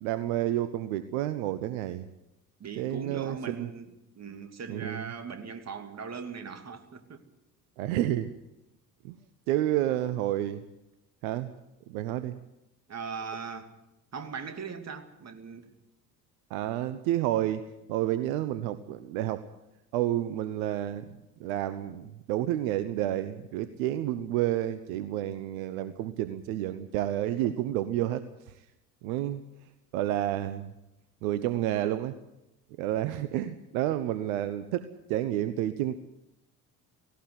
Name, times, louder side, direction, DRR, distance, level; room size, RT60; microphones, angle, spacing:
voice 1, 0.0-2.1 2.8-3.7 4.7-5.1 7.8-8.3 9.0-9.2 9.5-10.6 11.2-11.5 11.9-12.4 16.5-17.6 17.9-19.4 19.9-28.6 29.0-29.4 29.9-30.7 31.2-32.2 32.8-36.0, right 13 dB, 60° right, 1.1 m, -30 dB
voice 2, 2.6-7.2 9.9-10.0 12.9-13.7 14.1-15.8, right 5 dB, 35° right, 2.6 m, -39 dB
17.5 x 17.5 x 9.6 m
figure-of-eight pair, 60°, 47 cm